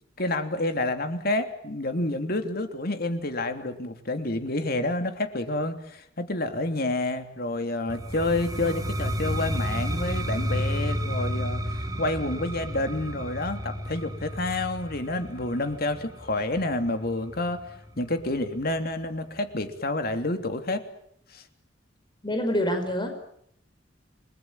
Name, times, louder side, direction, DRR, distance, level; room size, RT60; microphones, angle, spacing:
voice 1, 0.2-17.6 18.0-20.8 21.3-21.4, left 2 dB, 55° left, 7 dB, 3.1 m, -29 dB
sound 1, 7.9-17.7, equal, 20° right, 3.9 m, -31 dB
voice 2, 22.2-23.1, equal, 25° left, 5 dB, 5.4 m, -26 dB
30.0 x 21.0 x 9.0 m, 0.71 s
head